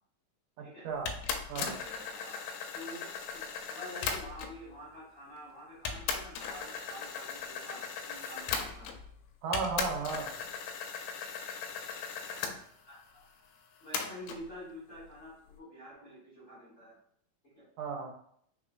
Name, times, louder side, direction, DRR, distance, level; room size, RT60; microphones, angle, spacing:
voice 1, 0.6-1.1 1.5-1.7 9.4-10.3 17.8-18.1, right 5 dB, 80° right, 1 dB, 2.0 m, -34 dB
sound 1, 1.1-4.6 5.4-5.5 5.9-9.1 9.5-12.6 13.9-14.4, left 6 dB, 90° left, 2.3 m, -37 dB
voice 2, 1.5-2.4 2.7-8.9 12.9-13.2 13.8-16.9 17.5-17.6, equal, 45° left, -9 dB, 0.8 m, -48 dB
5.0 x 3.6 x 2.3 m, 0.66 s
omnidirectional pair, 3.9 m